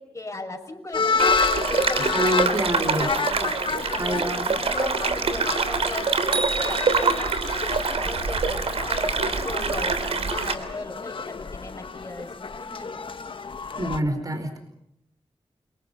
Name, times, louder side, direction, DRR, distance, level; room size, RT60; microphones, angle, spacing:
voice 1, 0.0-1.3 1.7-6.1 6.6-7.3 8.0-13.0, left 2 dB, 30° left, 5 dB, 6.0 m, -37 dB
sound 1, 0.9-14.0, left 4 dB, 60° left, 1.5 m, -30 dB
sound 2, 1.2-10.5, right 4 dB, 85° right, 3.4 m, -25 dB
voice 2, 2.1-3.1 4.0-4.5 13.8-14.6, right 1 dB, 35° right, 7 dB, 4.6 m, -26 dB
sound 3, 6.3-7.7, right 3 dB, 60° right, 2.5 m, -32 dB
29.5 x 26.5 x 5.5 m, 0.78 s
wide cardioid pair, 85°, 10 cm